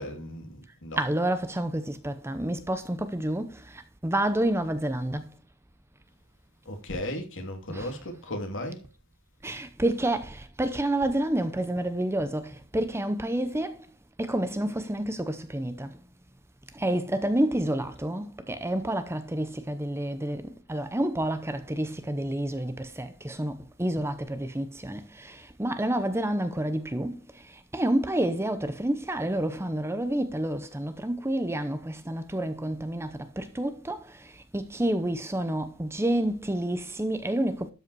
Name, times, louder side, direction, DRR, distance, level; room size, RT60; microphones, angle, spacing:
voice 1, 0.0-1.1 6.7-8.8, left 1 dB, 60° left, 2.5 m, -36 dB
voice 2, 1.0-5.3 7.7-8.0 9.4-13.9 14.2-16.1 16.7-37.7, right 1 dB, 10° right, 0.7 m, -29 dB
12.5 x 5.4 x 4.7 m
head